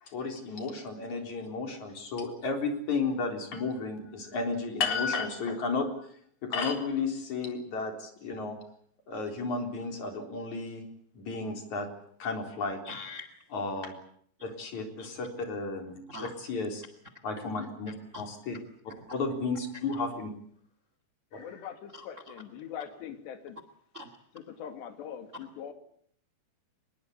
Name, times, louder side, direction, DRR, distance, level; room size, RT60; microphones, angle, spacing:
voice 1, 0.0-5.9 6.4-8.6 9.1-10.8 11.1-11.9 12.2-12.8 13.5-13.9 14.4-16.8 17.2-18.6 19.1-20.3 21.3-21.5, left 4 dB, 40° left, 4 dB, 5.0 m, -33 dB
voice 2, 12.8-13.4 14.4-14.5 15.0-15.1 16.1-16.3 17.9-18.3 19.0-19.1 19.9-20.0 21.9-22.4 23.9-24.1, left 3 dB, 80° right, 10 dB, 0.6 m, -44 dB
voice 3, 21.4-23.6 24.4-25.7, left 8 dB, 70° left, 7 dB, 4.3 m, -42 dB
23.5 x 22.0 x 8.6 m, 0.65 s
omnidirectional pair, 5.2 m